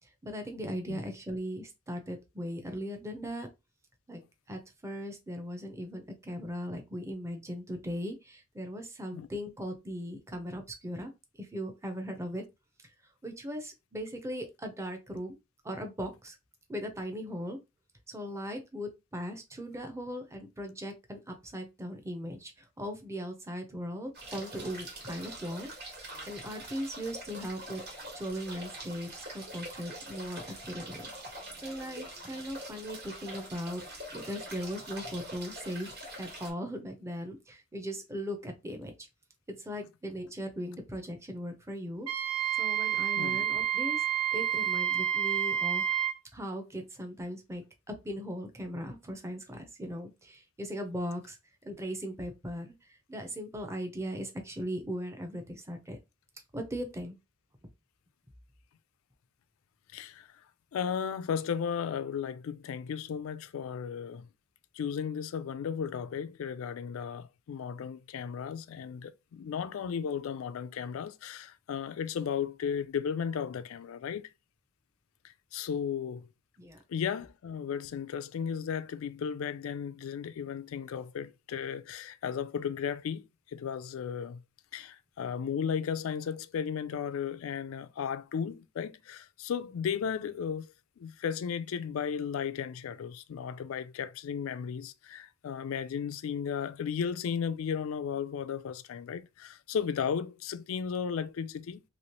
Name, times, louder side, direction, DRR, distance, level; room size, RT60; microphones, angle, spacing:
voice 1, 0.2-3.5 4.1-4.2 4.5-11.1 11.4-12.4 13.2-15.4 15.6-16.3 16.7-17.6 18.1-25.7 26.3-27.8 28.1-31.1 31.6-33.8 34.1-38.9 39.5-42.1 42.6-44.1 44.3-45.8 46.3-51.4 51.6-52.7 53.1-56.0 56.5-57.2 76.6-76.8, equal, 15° right, 0.6 m, -38 dB
sound 1, 24.1-36.5, right 1 dB, 50° right, 1.4 m, -44 dB
Wind instrument woodwind instrument, 42.1-46.2, right 10 dB, 75° right, 0.5 m, -29 dB
voice 2, 59.9-60.3 60.7-64.3 64.7-74.3 75.2-76.3 76.9-84.4 84.7-101.8, left 7 dB, 70° left, 0.3 m, -35 dB
3.1 x 2.8 x 2.9 m
head